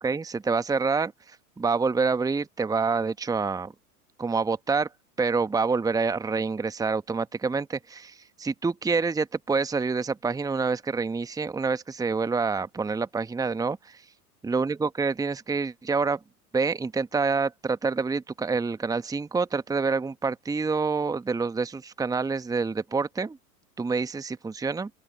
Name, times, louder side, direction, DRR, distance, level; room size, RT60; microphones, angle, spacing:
voice 1, 0.0-3.7 4.2-4.9 5.2-14.0 14.4-16.2 16.5-23.4 23.8-24.9, right 4 dB, 10° right, 1.4 m, -27 dB
open air
figure-of-eight pair, 90°, 46 cm